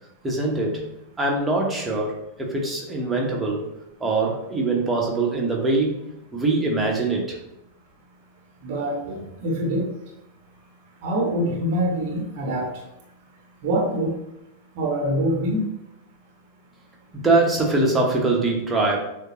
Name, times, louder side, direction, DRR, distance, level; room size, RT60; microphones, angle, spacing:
voice 1, 0.2-0.8 1.2-3.6 4.0-6.0 6.3-7.4 17.1-19.0, right 2 dB, 10° right, -2 dB, 1.0 m, -23 dB
voice 2, 8.6-9.9 11.0-12.7 13.6-14.1 14.7-15.7, right 1 dB, 50° right, -1 dB, 0.9 m, -24 dB
6.5 x 2.2 x 2.9 m, 0.86 s
figure-of-eight pair, 90°, 0 cm